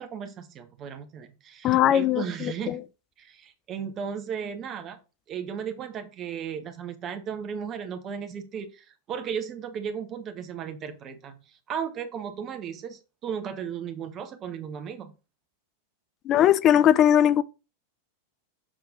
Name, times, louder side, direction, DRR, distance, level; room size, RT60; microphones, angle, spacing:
voice 1, 0.0-2.8 3.2-5.0 5.3-15.1, right 7 dB, 30° right, 1.4 m, -35 dB
voice 2, 1.6-2.8 16.3-17.4, left 11 dB, 30° left, 0.5 m, -20 dB
7.4 x 4.6 x 4.0 m
figure-of-eight pair, 90°, 0 cm